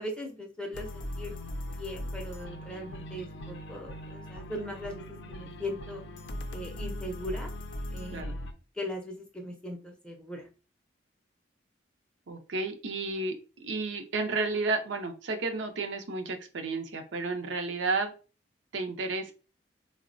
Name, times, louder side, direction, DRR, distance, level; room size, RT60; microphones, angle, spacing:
voice 1, 0.0-1.4 1.7-6.0 6.5-7.5 7.9-8.4 8.8-10.5, left 1 dB, 5° left, 1 dB, 0.5 m, -39 dB
sound 1, 0.7-8.5, left 1 dB, 70° left, 0.4 m, -39 dB
voice 2, 12.3-18.1 18.7-19.3, right 3 dB, 80° right, 4 dB, 0.5 m, -32 dB
3.7 x 2.0 x 2.5 m, 0.34 s
head